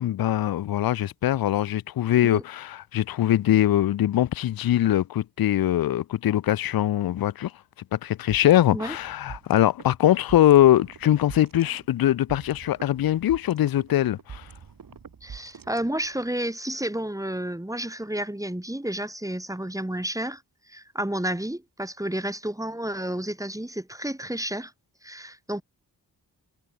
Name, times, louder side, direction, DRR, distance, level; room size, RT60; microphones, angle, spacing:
voice 1, 0.0-7.5 7.9-14.5, left 12 dB, 60° left, 0.5 m, -22 dB
sound 1, 8.3-16.3, right 6 dB, 55° right, 1.5 m, -45 dB
voice 2, 15.2-20.4 20.7-24.7 25.0-25.6, right 1 dB, 10° right, 2.0 m, -31 dB
wide cardioid pair, 100°, 41 cm